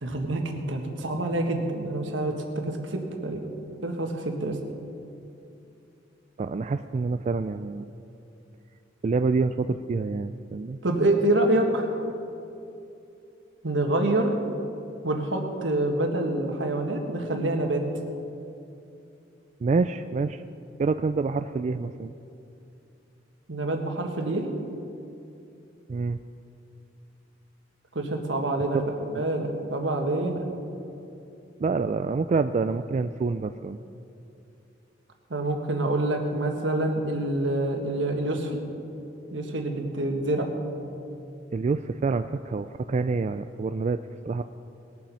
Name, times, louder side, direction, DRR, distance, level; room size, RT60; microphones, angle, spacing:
voice 1, 0.0-3.4 3.8-4.6 10.8-12.0 13.6-14.3 15.0-17.8 23.5-24.5 27.9-28.8 29.1-30.4 35.3-38.6 39.3-40.5, right 1 dB, 70° right, 3 dB, 1.6 m, -26 dB
voice 2, 6.4-7.9 9.0-10.8 19.6-20.4 20.8-22.1 25.9-26.2 29.1-29.2 31.6-33.8 41.5-44.0 44.3-44.4, right 4 dB, 40° right, 9 dB, 0.3 m, -27 dB
20.0 x 7.3 x 5.6 m, 2.8 s
head